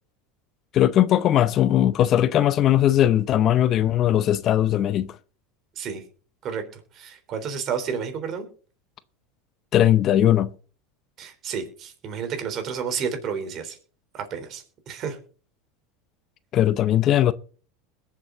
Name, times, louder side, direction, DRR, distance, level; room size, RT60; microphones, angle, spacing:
voice 1, 0.7-5.2 9.7-10.5 16.5-17.3, left 12 dB, 40° left, 0.7 m, -19 dB
voice 2, 6.9-8.5 11.2-13.8 14.1-15.2, right 6 dB, 45° right, 3.6 m, -31 dB
21.0 x 7.5 x 3.9 m
supercardioid pair, 115°, 0 cm